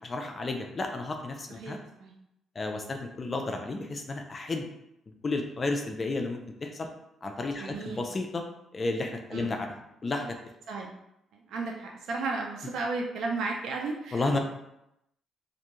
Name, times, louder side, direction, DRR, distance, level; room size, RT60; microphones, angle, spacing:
voice 1, 0.0-1.8 2.6-4.6 5.2-6.9 7.2-8.4 8.7-9.7 10.0-10.4 14.1-14.4, left 3 dB, 35° left, 4 dB, 0.4 m, -32 dB
voice 2, 1.5-2.1 7.6-8.0 9.3-9.5 10.7-10.9 11.3-14.4, right 3 dB, 75° right, 1 dB, 0.3 m, -34 dB
2.4 x 2.2 x 2.9 m, 0.82 s
cardioid pair, 90°, 0 cm